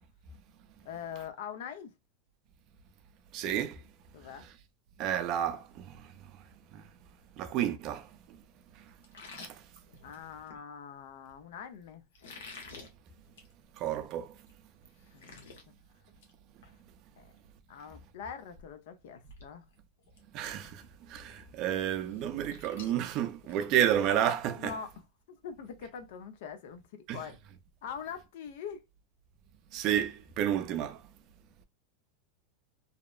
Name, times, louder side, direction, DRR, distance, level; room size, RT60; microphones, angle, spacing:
voice 1, 0.8-1.9 4.1-4.5 10.0-12.0 15.1-15.5 17.2-17.3 17.7-19.7 24.6-24.9 25.3-27.4 27.8-28.8, left 7 dB, 65° left, 0.5 m, -43 dB
voice 2, 3.3-3.8 5.0-6.1 6.7-6.8 7.4-8.4 13.8-14.3 20.3-24.8 27.1-27.2 29.7-31.0, right 10 dB, 40° right, 0.4 m, -31 dB
sound 1, 9.0-10.6 12.1-12.9 13.3-13.5 13.9-14.0 14.5-14.6 14.8-15.6 16.0-16.3 16.6-16.8 18.6-18.7 19.2-19.4 19.7-20.2 20.6-20.7 22.1-24.4, left 4 dB, 85° left, 0.9 m, -49 dB
2.7 x 2.1 x 2.3 m
supercardioid pair, 150°, 0 cm